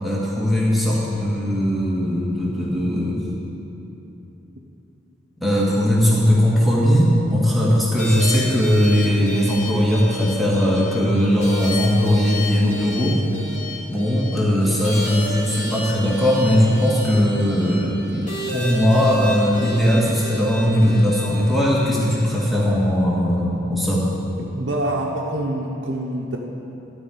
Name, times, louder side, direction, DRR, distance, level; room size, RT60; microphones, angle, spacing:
voice 1, 0.0-3.2 5.4-13.2 13.9-24.1, equal, ahead, -6 dB, 1.7 m, -19 dB
sound 1, 8.0-22.4, left 1 dB, 35° left, 2.1 m, -32 dB
voice 2, 24.6-26.4, right 1 dB, 60° right, -1 dB, 0.9 m, -25 dB
13.0 x 4.8 x 8.5 m, 2.9 s
head